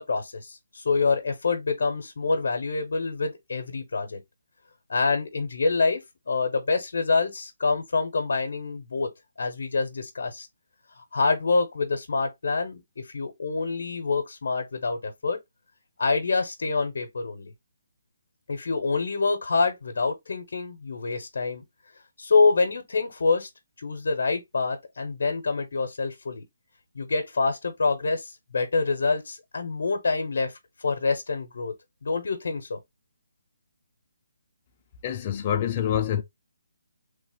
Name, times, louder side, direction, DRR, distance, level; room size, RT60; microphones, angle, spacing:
voice 1, 0.0-4.2 4.9-9.1 9.4-10.5 11.0-15.4 16.0-17.5 18.5-21.6 22.2-23.5 23.8-26.4 26.9-31.7 32.0-32.8, left 4 dB, 65° left, 0.8 m, -26 dB
voice 2, 35.0-36.2, left 9 dB, 25° left, 0.5 m, -26 dB
3.3 x 2.0 x 3.4 m
hypercardioid pair, 165°, 0 cm